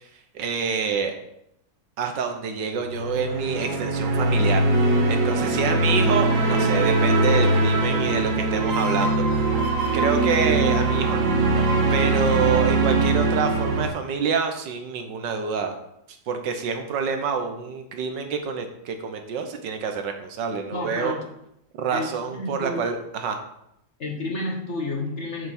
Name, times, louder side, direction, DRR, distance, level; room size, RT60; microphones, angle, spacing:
voice 1, 0.3-1.1 2.0-4.6 5.1-9.3 9.9-11.3 11.9-15.8 16.3-21.1 21.8-23.4, right 6 dB, 70° right, 5 dB, 1.5 m, -27 dB
sound 1, 2.8-13.9, right 2 dB, 85° right, 1.9 m, -22 dB
sound 2, 8.6-14.0, right 1 dB, 50° right, 1.3 m, -33 dB
voice 2, 20.7-21.2 21.9-22.8 24.0-25.5, left 2 dB, 45° left, 0 dB, 1.1 m, -30 dB
6.9 x 6.8 x 4.3 m, 0.78 s
omnidirectional pair, 2.1 m